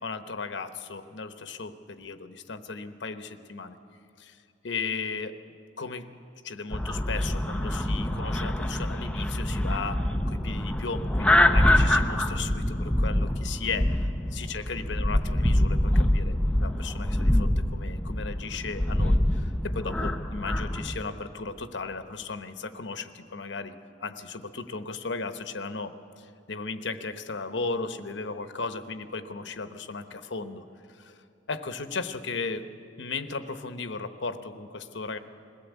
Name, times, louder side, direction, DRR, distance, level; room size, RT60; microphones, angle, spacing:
voice 1, 0.0-3.8 4.2-4.4 4.6-5.4 5.8-6.1 6.4-32.6 33.0-35.2, left 4 dB, 80° left, 10 dB, 1.0 m, -36 dB
sound 1, 6.7-21.0, left 1 dB, 5° left, 0.7 m, -25 dB
21.5 x 15.5 x 8.2 m, 2.6 s
head